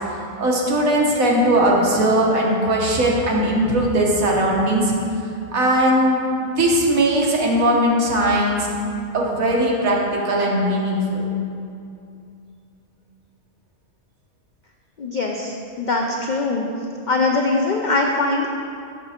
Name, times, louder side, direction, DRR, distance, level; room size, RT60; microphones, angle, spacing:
voice 1, 0.4-4.9 5.5-8.7 9.1-11.2, right 1 dB, 75° right, -2 dB, 1.5 m, -19 dB
voice 2, 15.0-16.7 17.1-18.5, left 3 dB, 85° left, 1 dB, 0.4 m, -22 dB
7.4 x 6.7 x 4.3 m, 2.5 s
omnidirectional pair, 1.5 m